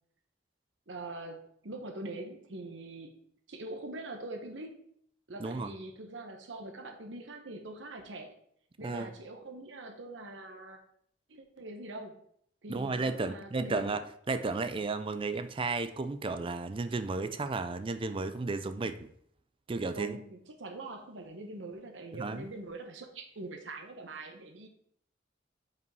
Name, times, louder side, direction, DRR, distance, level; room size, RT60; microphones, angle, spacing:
voice 1, 0.9-3.2 3.5-4.8 5.3-8.3 8.8-10.8 11.3-12.2 12.6-13.9 19.9-24.7, right 2 dB, 75° right, 1.0 m, -43 dB
voice 2, 5.4-5.7 8.8-9.1 12.7-19.1 19.7-20.2 22.1-22.5, right 3 dB, 30° right, 0.4 m, -33 dB
5.4 x 5.2 x 4.7 m
head